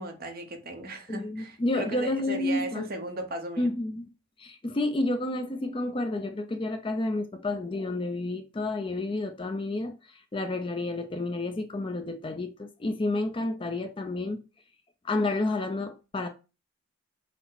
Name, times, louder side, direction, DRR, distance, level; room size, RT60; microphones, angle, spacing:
voice 1, 0.0-3.7, right 2 dB, 45° right, 0.8 m, -36 dB
voice 2, 1.1-2.8 3.6-4.1 4.4-14.4 15.0-16.3, left 2 dB, 25° left, 0.4 m, -30 dB
5.8 x 2.0 x 4.1 m
head